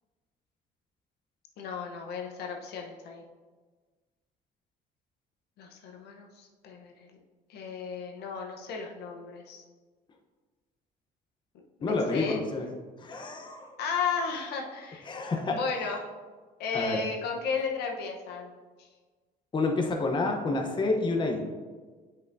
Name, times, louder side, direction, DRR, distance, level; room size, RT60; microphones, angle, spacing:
voice 1, 1.6-3.2 5.6-7.1 7.5-9.6 11.8-12.4 13.8-15.1 15.4-16.0 16.6-18.5 18.8-18.9, left 5 dB, 75° left, 1 dB, 0.9 m, -34 dB
voice 2, 11.8-12.7 13.0-13.8 15.0-15.6 16.7-17.0 19.5-21.4, left 3 dB, 30° left, 2 dB, 0.8 m, -29 dB
7.9 x 5.5 x 2.6 m, 1.4 s
cardioid pair, 110°, 17 cm